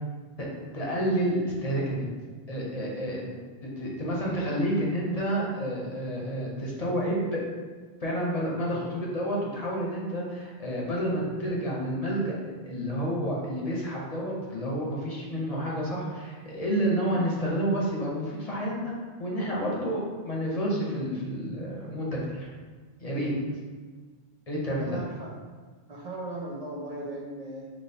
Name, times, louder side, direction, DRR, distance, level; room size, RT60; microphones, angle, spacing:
voice 1, 0.7-2.1 2.5-3.2 3.8-7.4 8.0-18.9 19.2-22.5 23.0-23.4 24.5-25.0, equal, 40° left, -4 dB, 0.9 m, -29 dB
voice 2, 24.8-25.3 25.9-27.7, right 2 dB, 40° right, -3 dB, 0.8 m, -38 dB
5.4 x 2.9 x 2.8 m, 1.4 s
omnidirectional pair, 1.0 m